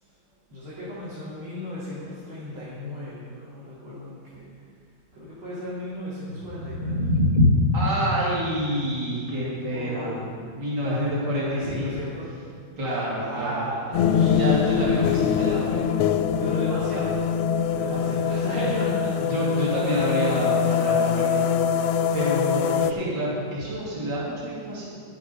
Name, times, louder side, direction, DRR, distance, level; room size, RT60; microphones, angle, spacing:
voice 1, 0.5-4.6 5.1-7.0 9.7-10.2 10.8-12.3 13.1-14.8 16.3-19.2, equal, 80° right, -10 dB, 3.6 m, -35 dB
sound 1, 6.2-12.3, left 2 dB, 25° right, 0.9 m, -26 dB
voice 2, 7.7-10.3 10.5-11.9 12.8-13.5 14.3-15.8 17.9-18.1 19.2-21.5 22.1-24.9, right 1 dB, 55° right, -7 dB, 3.3 m, -28 dB
sound 2, 13.9-22.9, left 7 dB, 85° left, 1.4 m, -23 dB
11.0 x 9.2 x 5.5 m, 2.1 s
omnidirectional pair, 2.3 m